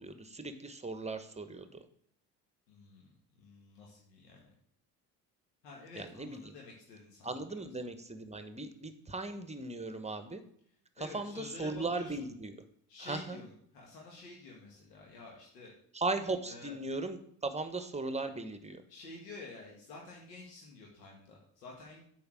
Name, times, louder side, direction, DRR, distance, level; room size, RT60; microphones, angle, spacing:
voice 1, 0.0-1.9 5.9-6.5 7.2-10.4 11.0-12.5 13.0-13.4 15.9-18.8, right 3 dB, 15° right, 10 dB, 1.1 m, -38 dB
voice 2, 2.7-4.4 5.6-7.8 10.7-12.2 12.9-15.7 16.4-16.8 18.9-22.0, left 3 dB, 80° left, -2 dB, 1.8 m, -50 dB
8.5 x 4.3 x 6.2 m, 0.68 s
hypercardioid pair, 60°, 47 cm